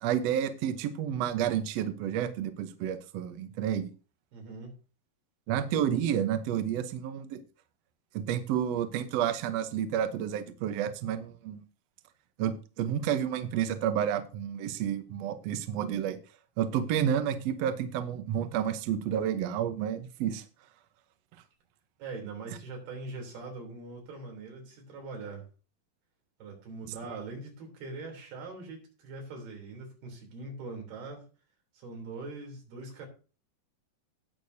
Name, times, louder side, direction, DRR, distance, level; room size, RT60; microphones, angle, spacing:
voice 1, 0.0-3.9 5.5-7.4 8.1-11.6 12.4-16.2 16.6-20.4, right 9 dB, 75° right, 9 dB, 1.5 m, -30 dB
voice 2, 4.3-4.8 22.0-25.5 26.4-31.3 31.7-33.1, right 3 dB, 90° right, 1 dB, 5.4 m, -42 dB
18.0 x 6.7 x 2.8 m, 0.37 s
omnidirectional pair, 4.3 m